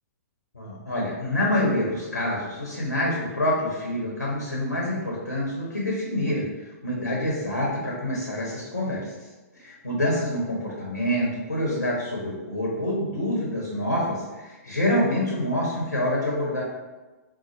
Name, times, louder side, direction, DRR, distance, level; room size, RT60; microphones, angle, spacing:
voice 1, 0.5-9.3 9.5-16.6, left 1 dB, 80° left, -4 dB, 0.8 m, -27 dB
4.0 x 2.1 x 2.9 m, 1.2 s
figure-of-eight pair, 110°, 9 cm